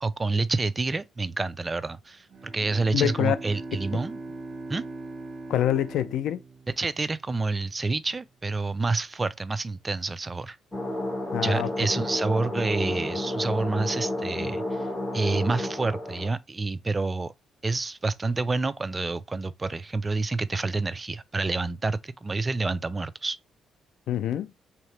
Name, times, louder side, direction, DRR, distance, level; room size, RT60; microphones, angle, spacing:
voice 1, 0.0-4.2 4.7-4.8 6.8-10.6 11.4-14.8 15.1-17.3 17.6-23.4, right 3 dB, 25° right, 0.4 m, -28 dB
Bowed string instrument, 2.3-7.5, right 2 dB, 60° right, 1.1 m, -40 dB
voice 2, 2.9-3.4 5.5-6.4 11.3-11.7 24.1-24.5, left 11 dB, 80° left, 0.4 m, -25 dB
sound 1, 10.7-16.3, left 1 dB, 15° left, 1.7 m, -31 dB
3.6 x 2.8 x 3.2 m
cardioid pair, 90°, 0 cm